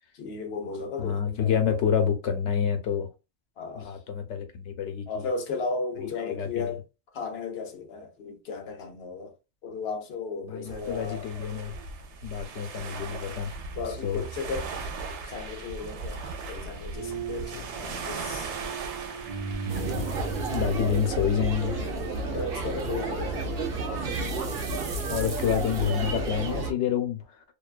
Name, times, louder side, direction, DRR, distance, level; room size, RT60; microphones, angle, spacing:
voice 1, 0.1-1.8 3.6-3.9 5.1-6.8 7.1-9.3 9.6-11.3 13.8-14.7 15.3-18.5 20.8-20.9 22.3-23.5, left 4 dB, 65° left, 0.9 m, -35 dB
voice 2, 1.0-3.1 3.7-5.3 6.0-6.8 10.4-11.7 12.2-13.5 14.0-14.2 19.7-20.1 20.5-21.9 25.1-27.2, left 8 dB, 90° left, 1.0 m, -28 dB
sound 1, 10.7-20.7, right 4 dB, 90° right, 0.9 m, -38 dB
sound 2, 16.9-24.9, right 5 dB, 35° right, 0.6 m, -39 dB
sound 3, 19.7-26.7, right 3 dB, 65° right, 0.8 m, -31 dB
2.6 x 2.2 x 2.4 m
omnidirectional pair, 1.1 m